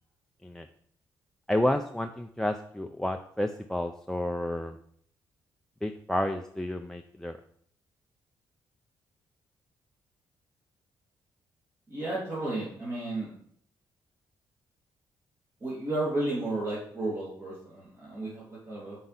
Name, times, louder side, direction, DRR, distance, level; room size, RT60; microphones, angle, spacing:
voice 1, 1.5-4.8 5.8-7.4, left 1 dB, 5° left, 7 dB, 0.4 m, -30 dB
voice 2, 11.9-13.3 15.6-19.0, right 2 dB, 35° right, -8 dB, 2.4 m, -33 dB
5.3 x 4.7 x 4.0 m, 0.64 s
cardioid pair, 70°, 8 cm